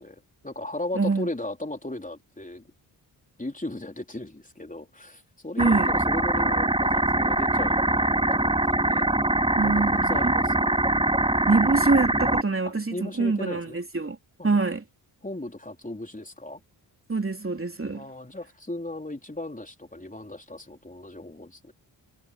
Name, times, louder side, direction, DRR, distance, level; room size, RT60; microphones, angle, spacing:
voice 1, 0.0-2.6 3.4-9.1 9.6-10.8 12.6-13.8 14.4-14.6 15.2-16.6 17.9-21.7, left 1 dB, 15° left, 4.4 m, -37 dB
voice 2, 0.9-1.3 5.6-5.9 9.6-10.3 11.5-14.2 14.4-14.8 17.1-18.1, right 3 dB, 25° right, 3.1 m, -25 dB
sound 1, 5.6-12.4, right 1 dB, 10° right, 3.0 m, -23 dB
supercardioid pair, 45°, 48 cm